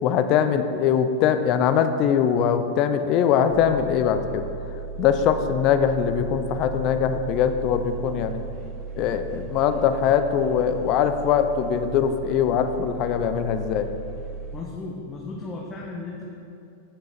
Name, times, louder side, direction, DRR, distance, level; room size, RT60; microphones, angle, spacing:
voice 1, 0.0-4.4 5.0-8.4 9.0-13.9, left 8 dB, 45° left, 9 dB, 0.6 m, -22 dB
sound 1, 3.5-14.6, right 5 dB, 45° right, 0.6 m, -36 dB
voice 2, 14.5-16.2, left 3 dB, 25° left, -2 dB, 1.0 m, -35 dB
8.9 x 6.4 x 4.3 m, 2.6 s
hypercardioid pair, 105°, 0 cm